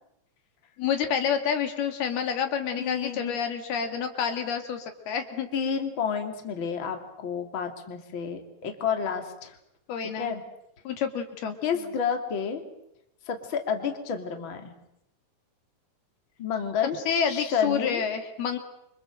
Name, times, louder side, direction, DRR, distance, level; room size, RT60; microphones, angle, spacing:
voice 1, 0.8-5.5 9.9-10.3 10.9-11.6 17.1-18.6, left 7 dB, 75° left, 6 dB, 4.1 m, -28 dB
voice 2, 2.8-3.4 5.5-9.6 10.0-10.4 11.6-12.6 13.3-14.7 16.4-17.0 17.3-18.0, left 6 dB, 35° left, 5 dB, 3.2 m, -30 dB
28.5 x 26.0 x 7.7 m, 0.79 s
omnidirectional pair, 4.6 m